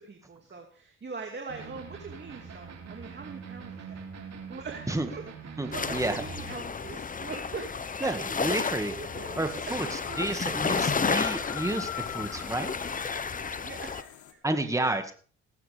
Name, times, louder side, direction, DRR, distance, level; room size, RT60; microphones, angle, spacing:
voice 1, 0.0-4.0 4.5-10.2 10.9-11.0 13.6-14.4 14.7-15.1, right 4 dB, 35° right, 3 dB, 2.5 m, -42 dB
sound 1, 1.5-6.5, right 6 dB, 60° right, 3.2 m, -43 dB
voice 2, 5.6-6.2 8.0-12.7 14.4-15.1, right 2 dB, 10° right, 7 dB, 1.9 m, -31 dB
sound 2, 5.7-14.0, left 5 dB, 25° left, 0.9 m, -32 dB
sound 3, 7.9-14.3, left 11 dB, 80° left, 2.0 m, -43 dB
18.5 x 9.3 x 3.5 m, 0.40 s
supercardioid pair, 60°, 30 cm